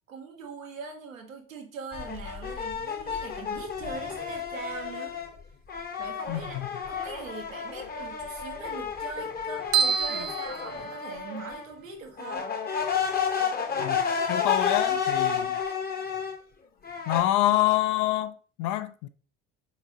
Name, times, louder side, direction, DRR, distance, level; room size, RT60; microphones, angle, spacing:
voice 1, 0.1-5.2 6.0-6.6 6.9-12.5, right 4 dB, 85° right, 0.9 m, -41 dB
sound 1, 1.9-5.3 5.7-11.7 12.2-16.4 16.8-17.2, left 7 dB, 25° left, 0.8 m, -31 dB
voice 2, 6.3-6.7 13.8-15.6 17.1-19.1, left 14 dB, 50° left, 0.5 m, -27 dB
sound 2, 9.7-11.5, right 7 dB, 60° right, 0.6 m, -28 dB
4.3 x 3.9 x 2.7 m
figure-of-eight pair, 60°, 39 cm